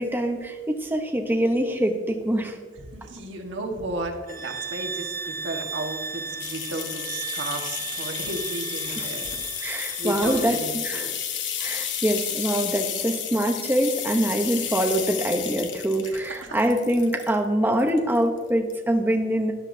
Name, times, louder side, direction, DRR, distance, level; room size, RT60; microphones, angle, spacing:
voice 1, 0.0-2.6 8.9-9.1 9.6-11.1 11.6-19.5, right 1 dB, 10° right, 3 dB, 0.8 m, -24 dB
voice 2, 2.8-11.2 16.0-16.7, right 1 dB, 75° right, 3 dB, 1.5 m, -34 dB
sound 1, 4.3-10.7, right 6 dB, 50° right, 1.0 m, -35 dB
sound 2, 6.4-17.4 17.8-18.4 18.7-18.8, left 9 dB, 70° left, 1.0 m, -32 dB
13.0 x 10.5 x 2.7 m, 1.5 s
head